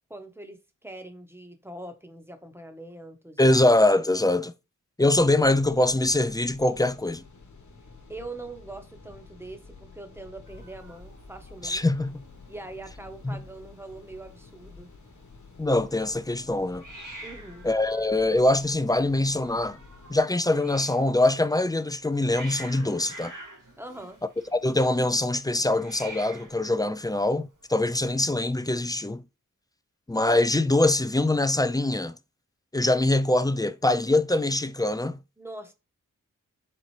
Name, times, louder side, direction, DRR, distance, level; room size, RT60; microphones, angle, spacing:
voice 1, 0.1-3.5 8.1-11.8 12.5-14.9 17.2-17.7 23.8-24.2 35.4-35.7, right 2 dB, 10° right, 0.9 m, -42 dB
voice 2, 3.4-4.5 5.0-7.2 11.6-12.2 13.2-13.4 15.6-16.8 17.6-19.8 20.1-23.3 24.5-29.2 30.1-32.2 32.7-35.2, left 2 dB, 15° left, 0.3 m, -23 dB
sound 1, 5.1-20.2, left 3 dB, 65° left, 1.1 m, -50 dB
Hiss, 10.5-27.8, right 1 dB, 80° right, 2.0 m, -49 dB
4.3 x 3.8 x 3.1 m
wide cardioid pair, 60°, 31 cm